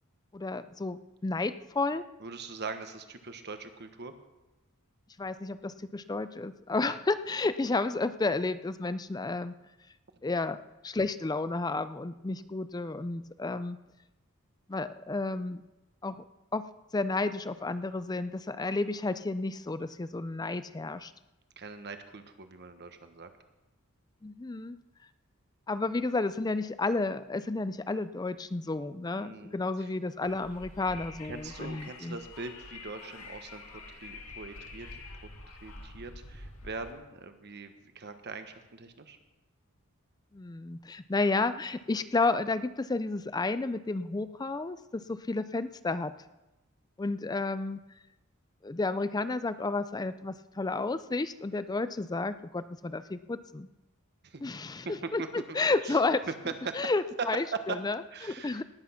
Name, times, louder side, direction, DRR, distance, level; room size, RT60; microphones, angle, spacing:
voice 1, 0.3-2.0 5.2-9.5 10.2-13.8 14.7-15.6 16.0-16.2 16.5-16.7 16.9-21.1 24.2-24.8 25.7-32.2 40.3-46.1 47.0-47.8 48.6-53.7 54.4-54.9 55.1-56.3 56.7-58.0 58.2-58.6, left 3 dB, 20° left, 13 dB, 0.4 m, -31 dB
voice 2, 2.2-4.1 21.6-23.3 29.1-29.9 31.2-35.3 35.6-39.2 54.2-54.4 55.0-55.6 55.8-56.0 56.3-56.8 57.2-57.3 57.5-57.8 58.1-58.6, right 4 dB, 50° right, 8 dB, 1.2 m, -41 dB
Wind, 30.3-36.9, left 3 dB, 70° left, 2.3 m, -47 dB
18.5 x 8.3 x 5.8 m, 1.0 s
head